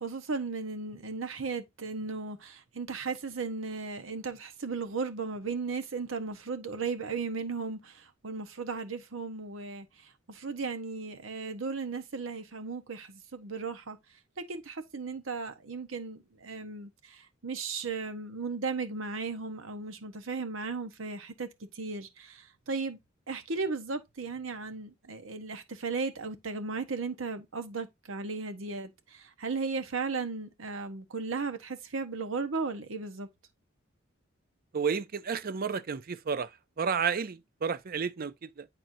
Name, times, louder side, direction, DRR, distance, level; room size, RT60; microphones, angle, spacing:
voice 1, 0.0-9.9 10.3-14.0 14.4-21.5 21.7-23.0 23.3-33.3, right 4 dB, 80° right, 1.0 m, -36 dB
voice 2, 34.7-36.5 36.8-38.7, right 6 dB, 45° right, 0.5 m, -31 dB
8.9 x 4.3 x 2.6 m
head